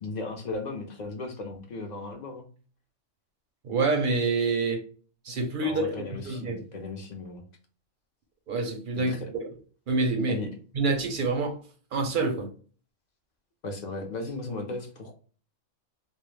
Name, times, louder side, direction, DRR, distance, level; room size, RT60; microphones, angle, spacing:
voice 1, 0.0-2.5 5.6-7.4 8.9-9.3 10.3-10.5 13.6-15.1, left 3 dB, 50° left, 0.5 m, -36 dB
voice 2, 3.6-4.8 5.2-6.6 8.5-9.1 9.9-10.4 10.8-11.6 11.9-12.5, right 3 dB, 55° right, 0.6 m, -27 dB
2.3 x 2.1 x 3.1 m
omnidirectional pair, 1.3 m